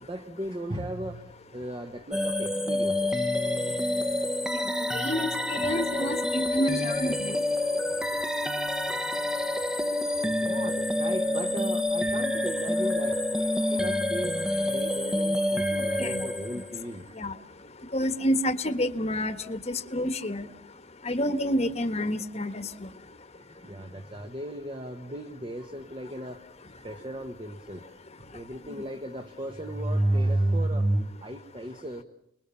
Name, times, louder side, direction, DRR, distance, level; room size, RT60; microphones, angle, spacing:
voice 1, 0.0-3.3 5.6-5.7 10.4-13.3 13.7-14.4 14.6-17.2 18.0-18.1 23.3-32.0, right 1 dB, 25° right, 7 dB, 1.3 m, -33 dB
sound 1, 2.1-16.9, left 1 dB, 5° right, 1.0 m, -28 dB
voice 2, 4.9-7.4 16.0-16.2 17.2-17.3 17.9-19.6 19.9-20.5 21.0-22.6, equal, 30° left, 9 dB, 1.4 m, -28 dB
29.5 x 21.0 x 7.1 m, 0.79 s
head